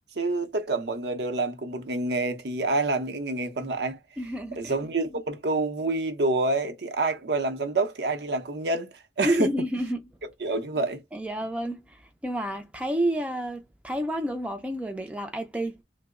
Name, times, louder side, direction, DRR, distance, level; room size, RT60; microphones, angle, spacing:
voice 1, 0.2-4.0 4.6-8.9 9.2-9.5 10.4-11.0, right 2 dB, 75° right, 0.7 m, -27 dB
voice 2, 4.2-4.7 9.2-10.1 11.1-11.8 12.2-15.7, right 1 dB, 10° right, 0.4 m, -29 dB
2.9 x 2.0 x 3.5 m
head